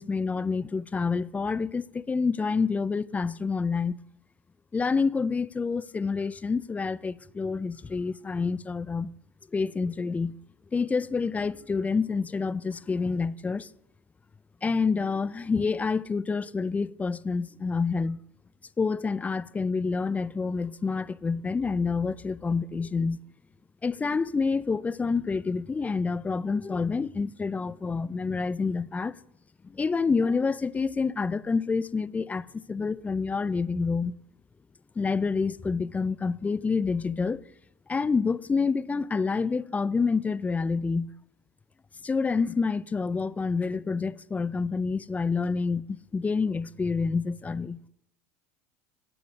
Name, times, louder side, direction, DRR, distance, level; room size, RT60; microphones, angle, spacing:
voice 1, 0.0-4.0 4.7-9.1 9.5-10.3 10.7-13.7 14.6-18.2 18.8-23.2 23.8-29.2 29.7-34.1 35.0-37.4 37.9-41.1 42.0-47.9, left 4 dB, 15° left, 0.3 m, -28 dB
14.5 x 5.0 x 4.8 m
hypercardioid pair, 85°, 9 cm